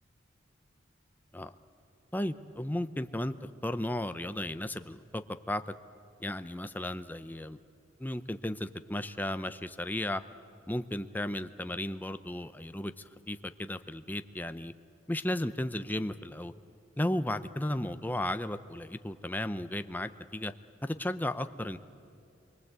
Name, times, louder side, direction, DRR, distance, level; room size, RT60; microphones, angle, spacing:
voice 1, 2.1-3.3 3.6-5.7 6.2-7.6 8.0-10.2 10.7-14.7 15.1-16.5 17.0-20.5 20.8-21.8, left 1 dB, 10° left, 10 dB, 0.6 m, -34 dB
27.5 x 23.5 x 8.1 m, 2.5 s
head